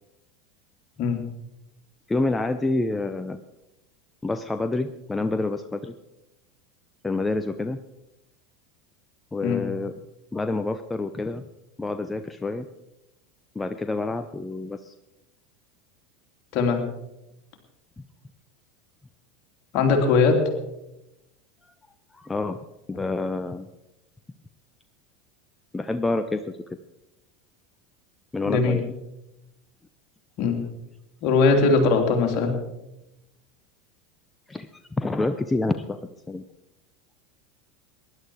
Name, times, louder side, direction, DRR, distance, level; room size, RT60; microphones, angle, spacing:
voice 1, 2.1-3.4 4.2-5.9 7.0-7.8 9.3-9.9 10.3-11.5 11.8-12.7 13.5-14.9 18.0-18.1 22.1-22.6 22.9-23.7 25.7-26.8 28.3-28.9 34.5-36.0 36.3-36.4, left 2 dB, 15° left, 10 dB, 0.7 m, -28 dB
voice 2, 19.7-20.4 28.5-28.8 30.4-30.6 31.2-32.6, left 4 dB, 50° left, 3 dB, 3.1 m, -20 dB
19.0 x 11.5 x 4.8 m, 0.92 s
figure-of-eight pair, 80°, 0 cm